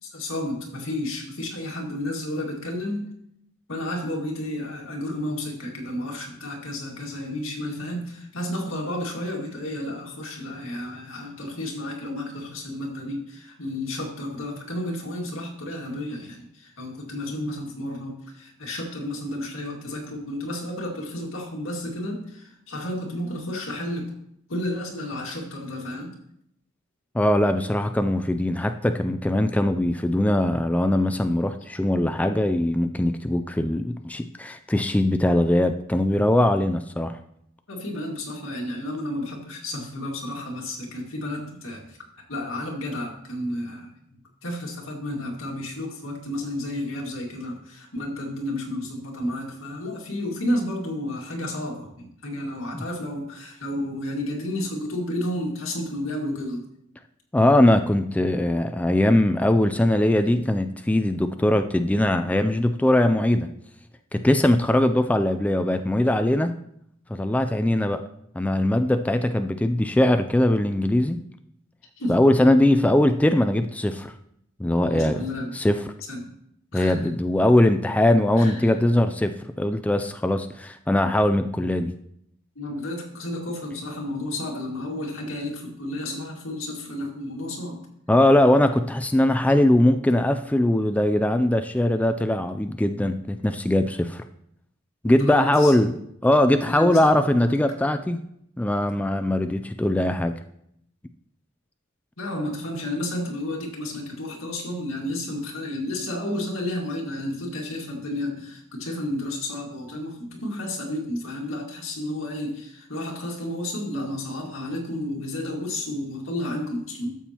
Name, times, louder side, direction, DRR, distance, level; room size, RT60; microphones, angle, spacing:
voice 1, 0.0-3.1 3.7-24.1 24.5-26.2 37.7-43.9 44.4-56.7 72.0-72.2 74.9-75.5 76.1-76.4 76.7-77.1 78.4-78.8 82.6-87.8 95.0-95.7 96.7-97.1 97.5-97.6 102.2-117.2, left 1 dB, 85° left, 0 dB, 2.0 m, -31 dB
voice 2, 27.1-37.2 57.3-63.5 64.1-66.5 67.1-68.0 68.4-71.2 72.1-74.1 74.6-75.2 75.6-75.8 76.7-81.9 88.1-94.2 95.0-96.0 96.2-98.2 98.6-100.3, left 1 dB, 5° left, 8 dB, 0.3 m, -21 dB
12.5 x 7.2 x 2.9 m, 0.73 s
head